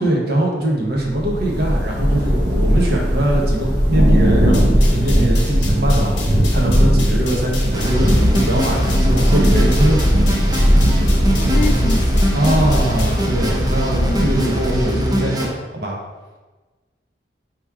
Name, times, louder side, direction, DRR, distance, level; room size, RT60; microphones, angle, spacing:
voice 1, 0.0-6.1 6.5-10.0 12.3-15.9, right 1 dB, 60° right, -1 dB, 0.9 m, -21 dB
Thunder / Rain, 1.0-15.1, equal, 80° right, 1.4 m, -18 dB
sound 1, 4.5-13.2, left 4 dB, 80° left, 1.0 m, -34 dB
sound 2, 7.7-15.5, equal, 20° right, 0.6 m, -22 dB
voice 2, 11.4-12.8 13.9-14.4 14.9-15.1, left 3 dB, 45° left, 5 dB, 0.3 m, -27 dB
3.6 x 3.0 x 4.6 m, 1.2 s
head